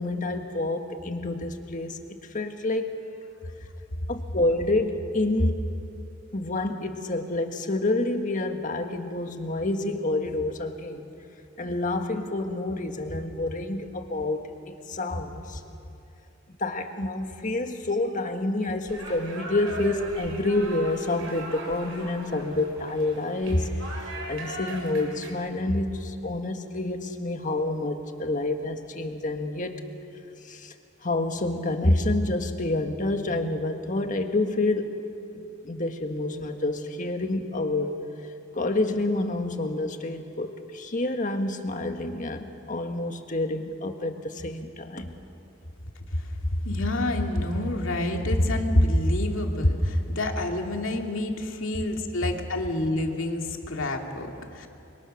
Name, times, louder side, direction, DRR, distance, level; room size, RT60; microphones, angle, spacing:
voice 1, 0.0-3.0 4.1-5.7 6.3-11.1 11.6-15.6 16.6-23.7 24.3-29.8 30.5-30.7 31.0-34.9 35.3-38.0 38.5-45.1, left 2 dB, 40° left, 5 dB, 1.6 m, -28 dB
sound 1, 18.9-25.3, right 2 dB, 75° right, 5.0 m, -39 dB
voice 2, 46.6-54.7, left 1 dB, 70° left, 3 dB, 2.3 m, -26 dB
29.5 x 24.0 x 6.5 m, 2.7 s
head